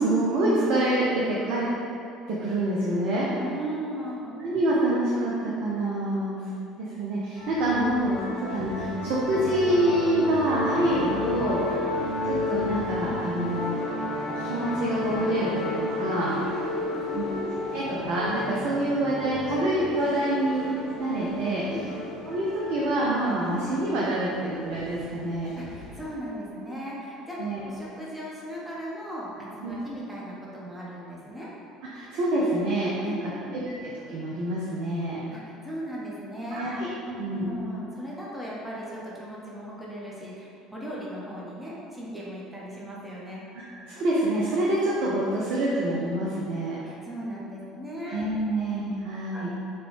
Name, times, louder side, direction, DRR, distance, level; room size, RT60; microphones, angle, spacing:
voice 1, 0.0-1.7 2.3-3.3 4.3-6.4 6.8-8.2 8.5-11.7 12.3-13.8 14.4-16.3 17.1-17.3 17.7-20.7 21.0-21.6 22.3-25.6 27.4-27.6 29.6-29.8 31.9-33.2 33.5-35.2 36.5-37.5 43.7-46.8 48.1-49.5, right 1 dB, 50° right, -6 dB, 0.4 m, -26 dB
voice 2, 3.4-4.4 8.3-8.4 11.6-11.8 16.3-17.4 21.7-22.0 25.5-31.5 33.0-33.7 35.3-43.4 46.8-48.6 49.3-49.6, equal, 5° right, -6 dB, 0.8 m, -37 dB
sound 1, 7.4-26.1, left 2 dB, 45° left, 0.8 m, -33 dB
3.8 x 2.2 x 3.2 m, 2.7 s
figure-of-eight pair, 60°, 2 cm